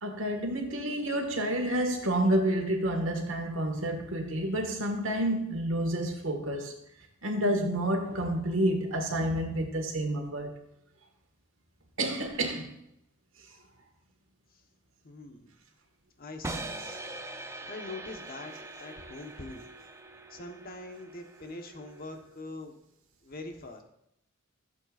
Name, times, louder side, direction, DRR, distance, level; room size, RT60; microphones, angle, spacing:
voice 1, 0.0-6.7 7.2-10.5 12.0-12.7 16.9-17.0, right 1 dB, 70° right, 1.8 m, -29 dB
voice 2, 15.0-15.5 16.2-16.9 17.4-19.6 20.3-22.8 23.2-23.8, left 2 dB, 45° left, 1.2 m, -43 dB
sound 1, 16.4-22.4, right 2 dB, 15° right, 0.5 m, -43 dB
15.5 x 7.7 x 2.5 m
head